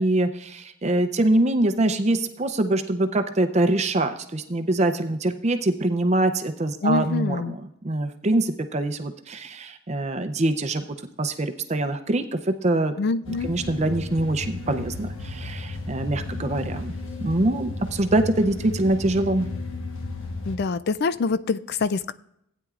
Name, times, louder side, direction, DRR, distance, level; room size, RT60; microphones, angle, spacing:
voice 1, 0.0-7.4 7.8-10.8 11.2-12.9 13.4-16.9 17.2-19.5, right 2 dB, 30° right, 8 dB, 0.6 m, -24 dB
voice 2, 6.8-7.6 13.0-13.6 20.5-22.1, left 4 dB, 50° left, 15 dB, 0.4 m, -25 dB
sound 1, 13.2-20.6, left 3 dB, 65° left, 1.3 m, -34 dB
16.0 x 9.3 x 2.4 m, 0.76 s
head